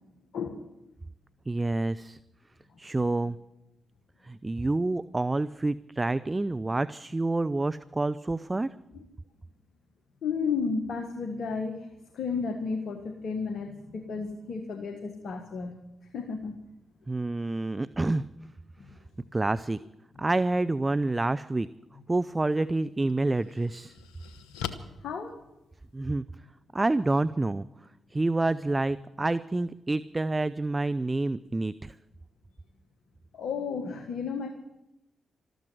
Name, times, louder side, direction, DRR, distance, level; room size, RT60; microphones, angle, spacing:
voice 1, 0.3-0.6 2.7-2.8 10.2-16.6 18.8-19.0 25.0-25.4 33.3-34.5, left 5 dB, 65° left, 7 dB, 1.5 m, -33 dB
voice 2, 1.5-2.2 2.8-3.4 4.2-8.7 17.1-18.2 19.3-19.8 20.2-21.7 22.1-24.0 25.9-26.2 26.7-27.7 28.1-32.0, right 2 dB, 25° right, 15 dB, 0.5 m, -28 dB
sound 1, 22.4-22.5 23.1-26.1, left 8 dB, 85° left, 0.9 m, -41 dB
13.5 x 13.5 x 7.9 m, 0.91 s
hypercardioid pair, 40°, 0 cm